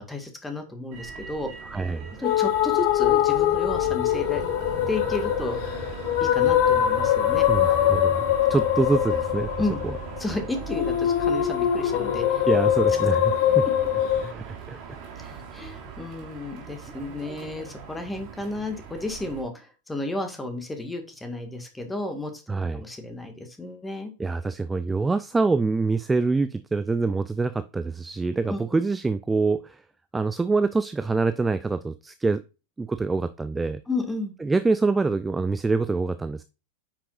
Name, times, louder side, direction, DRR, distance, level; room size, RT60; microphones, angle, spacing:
voice 1, 0.0-1.5 2.2-4.4 4.9-5.6 6.2-7.5 9.6-9.8 10.2-12.4 15.1-24.1 28.5-28.8 33.9-34.3, left 2 dB, 10° left, 6 dB, 1.8 m, -32 dB
Motor vehicle (road), 0.9-19.4, right 6 dB, 40° right, 3.2 m, -38 dB
voice 2, 1.7-2.1 7.5-9.5 9.8-10.0 12.4-13.7 14.2-14.8 22.5-22.8 24.2-29.8 30.1-32.4 32.8-33.8 34.4-36.4, right 3 dB, 10° right, 12 dB, 0.4 m, -25 dB
sound 1, 2.2-14.3, left 11 dB, 45° left, 0.8 m, -23 dB
9.3 x 6.0 x 2.5 m, 0.30 s
figure-of-eight pair, 90°, 0 cm